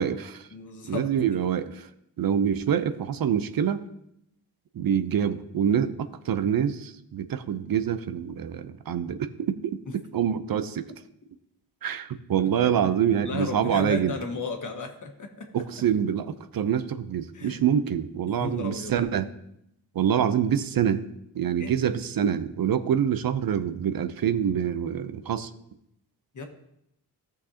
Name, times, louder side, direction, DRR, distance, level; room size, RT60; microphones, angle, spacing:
voice 1, 0.0-0.5 0.9-1.9 2.2-3.9 4.7-10.8 11.8-14.2 15.5-19.3 19.9-21.0 21.3-25.5, right 8 dB, 55° right, 11 dB, 0.7 m, -26 dB
voice 2, 0.5-1.1 12.4-12.5 13.2-15.5 17.3-17.6 18.3-18.9 21.6-21.7 26.3-26.5, left 4 dB, 45° left, 4 dB, 1.5 m, -34 dB
14.5 x 6.5 x 2.8 m, 0.78 s
cardioid pair, 80°, 41 cm